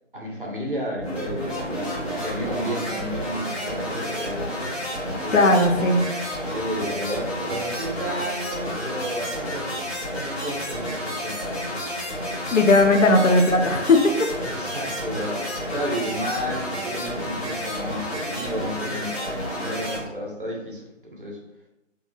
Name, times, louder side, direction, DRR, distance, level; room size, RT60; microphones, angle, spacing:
voice 1, 0.1-4.5 5.1-5.4 6.4-9.9 10.1-11.8 14.4-21.4, equal, 45° right, -2 dB, 0.6 m, -32 dB
sound 1, 1.0-20.0, equal, 55° left, 1.0 m, -30 dB
voice 2, 5.3-6.0 12.5-14.3, left 2 dB, 80° left, 4 dB, 0.6 m, -17 dB
2.6 x 2.4 x 2.7 m, 0.91 s
figure-of-eight pair, 165°, 38 cm